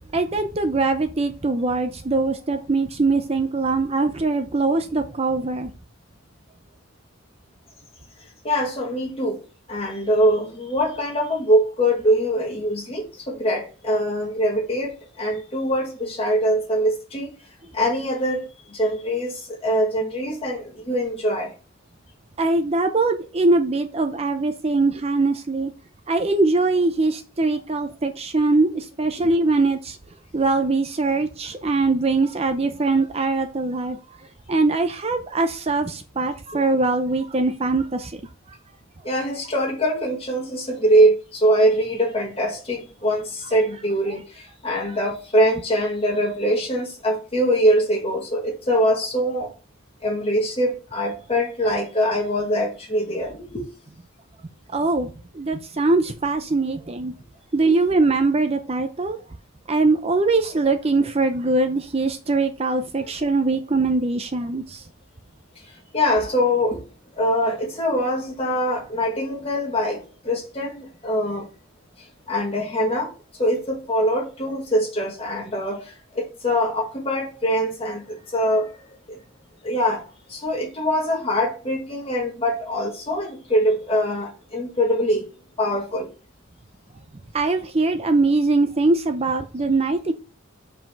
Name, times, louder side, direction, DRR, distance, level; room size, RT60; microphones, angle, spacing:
voice 1, 0.1-5.7 22.4-25.7 26.1-30.0 30.3-34.0 34.5-38.2 44.8-44.9 54.7-57.1 57.5-59.2 59.7-64.8 87.3-90.1, right 3 dB, 30° right, 0.6 m, -22 dB
voice 2, 8.4-9.4 9.7-17.3 17.7-21.5 29.2-29.3 39.0-49.5 50.0-53.7 65.9-66.8 67.1-71.5 72.3-73.1 73.4-78.7 79.1-79.2 79.6-85.2 85.6-86.1, equal, 30° left, 2.0 m, -23 dB
5.7 x 4.8 x 4.6 m
head